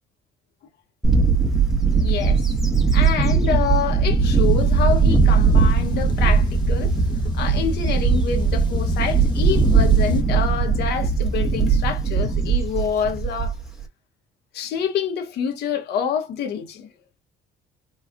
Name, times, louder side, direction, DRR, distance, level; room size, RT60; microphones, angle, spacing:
Bird / Wind, 1.0-13.8, right 5 dB, ahead, 1.9 m, -19 dB
voice 1, 1.9-2.4 2.9-6.9 7.3-13.5 14.5-16.9, left 7 dB, 75° left, 1.8 m, -27 dB
sound 1, 4.2-10.2, left 1 dB, 25° left, 1.4 m, -26 dB
4.5 x 3.1 x 2.4 m
cardioid pair, 110°, 17 cm